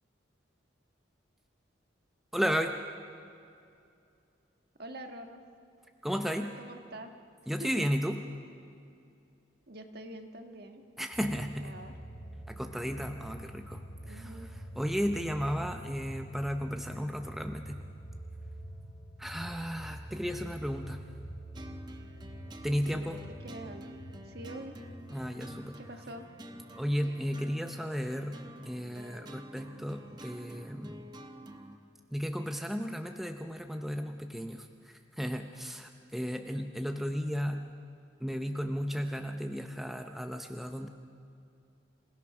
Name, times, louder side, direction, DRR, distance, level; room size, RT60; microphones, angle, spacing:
voice 1, 2.3-2.8 6.0-6.5 7.5-8.2 11.0-11.8 12.5-17.8 19.2-21.0 22.6-23.2 25.1-25.8 26.8-28.4 28.7-31.1 32.1-37.6 38.2-40.9, equal, ahead, 5 dB, 0.6 m, -34 dB
voice 2, 4.8-5.4 6.6-7.1 7.6-7.9 9.7-10.8 11.6-12.0 14.0-14.5 22.9-24.0 24.2-24.8 25.8-26.3, right 1 dB, 50° right, 5 dB, 1.5 m, -45 dB
sound 1, 11.1-28.6 29.0-29.1, right 1 dB, 75° left, 5.9 m, -47 dB
sound 2, 21.5-31.8, right 1 dB, 20° right, 1.0 m, -49 dB
27.0 x 16.5 x 6.0 m, 2.5 s
head